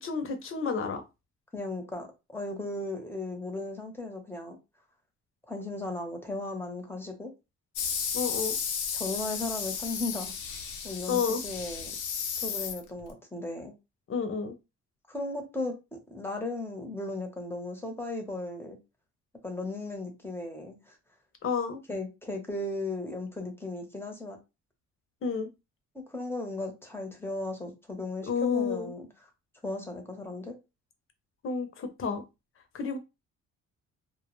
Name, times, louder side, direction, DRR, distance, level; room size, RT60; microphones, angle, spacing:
voice 1, 0.0-1.0 8.1-8.6 11.1-11.4 14.1-14.5 21.4-21.8 25.2-25.5 28.3-28.9 31.4-32.2 32.7-33.0, left 5 dB, 45° left, 0.7 m, -30 dB
voice 2, 1.5-4.6 5.5-7.3 8.9-10.3 10.8-11.9 12.4-13.7 15.1-18.8 19.4-21.0 21.9-24.4 26.1-29.1 29.6-30.6, left 2 dB, 10° left, 0.8 m, -36 dB
sound 1, 7.8-13.1, left 7 dB, 80° left, 0.7 m, -33 dB
2.2 x 2.1 x 3.0 m
cardioid pair, 90°, 30 cm